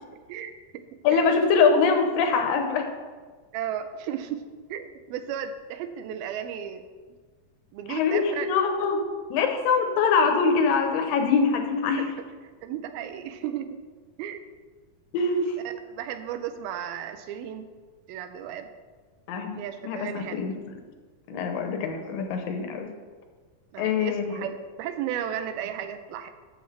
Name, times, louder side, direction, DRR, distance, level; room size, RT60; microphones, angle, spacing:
voice 1, 0.3-0.8 1.1-1.5 3.5-4.4 4.7-6.8 7.7-8.5 11.9-12.0 12.6-13.8 14.2-14.4 15.9-17.7 18.1-18.7 19.5-20.4 21.3-21.5 23.7-26.3, right 9 dB, 85° right, 9 dB, 2.5 m, -34 dB
voice 2, 1.0-2.9 7.9-9.0 9.3-12.0 15.1-15.6 19.3-19.6 19.8-20.5 21.3-22.9 23.8-24.5, left 5 dB, 75° left, 5 dB, 2.4 m, -23 dB
12.5 x 7.2 x 3.3 m, 1.5 s
omnidirectional pair, 4.3 m